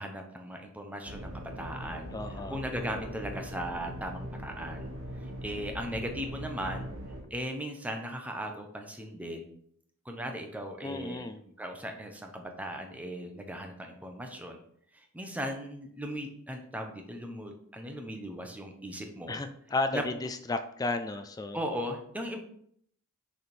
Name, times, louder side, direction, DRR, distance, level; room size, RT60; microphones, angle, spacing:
voice 1, 0.0-2.1 2.5-4.9 5.2-6.9 7.3-9.5 10.0-11.2 11.6-14.6 14.9-19.4 19.9-20.0 21.5-22.4, equal, 5° right, 3 dB, 0.7 m, -38 dB
sound 1, 1.0-7.2, right 1 dB, 65° right, 1.2 m, -41 dB
voice 2, 2.1-2.6 2.9-3.1 10.8-11.4 19.3-21.6, left 2 dB, 15° left, 9 dB, 0.3 m, -33 dB
6.5 x 3.5 x 4.4 m, 0.66 s
head